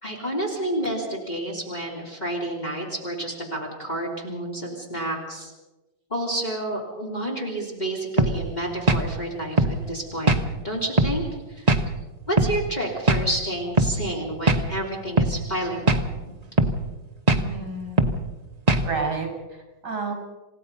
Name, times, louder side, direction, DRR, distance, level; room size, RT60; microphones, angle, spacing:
voice 1, 0.0-5.5 6.1-10.4 10.6-11.7 12.3-16.0, right 1 dB, 20° left, -1 dB, 3.5 m, -30 dB
sound 1, 8.2-8.4 8.9-9.1 9.6-9.8 10.3-10.4 11.0-11.2 11.7-11.8 12.4-12.6 13.1-13.3 13.8-13.9 14.5-14.6 15.2-15.3 15.9-16.1 16.6-16.8 17.3-17.4 18.0-18.2 18.7-18.9, right 2 dB, 25° right, 0.9 m, -19 dB
voice 2, 17.4-18.2 18.8-20.1, right 4 dB, 55° right, 3 dB, 6.6 m, -31 dB
28.5 x 17.0 x 5.5 m, 1.1 s
omnidirectional pair, 2.2 m